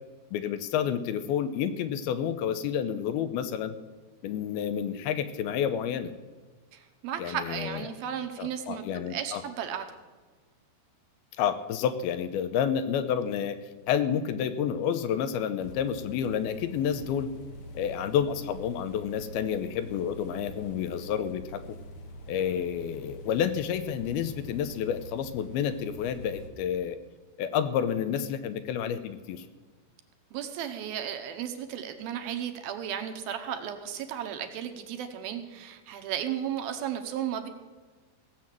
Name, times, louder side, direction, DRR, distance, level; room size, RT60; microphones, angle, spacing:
voice 1, 0.3-3.8 4.2-6.1 7.2-7.8 8.4-9.4 11.4-13.6 13.9-17.3 17.7-21.6 22.3-27.0 27.4-29.5, left 8 dB, 80° left, 11 dB, 2.4 m, -29 dB
voice 2, 6.7-8.8 9.1-9.9 30.3-37.5, right 9 dB, 75° right, 6 dB, 2.5 m, -34 dB
sound 1, 15.6-26.5, equal, 60° left, 2.0 m, -45 dB
17.0 x 7.7 x 7.4 m, 1.3 s
omnidirectional pair, 4.8 m